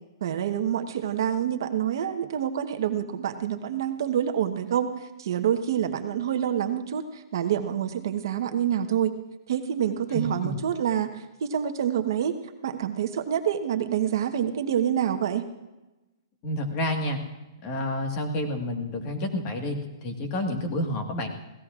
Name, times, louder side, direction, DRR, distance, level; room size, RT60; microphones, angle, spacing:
voice 1, 0.2-4.9 5.2-9.1 9.5-12.4 12.6-15.5, right 9 dB, 55° right, 7 dB, 1.1 m, -27 dB
voice 2, 10.1-10.6 16.4-17.2 17.6-21.3, left 1 dB, 25° left, 4 dB, 1.6 m, -29 dB
26.5 x 17.0 x 2.5 m, 1.0 s
hypercardioid pair, 170°, 2 cm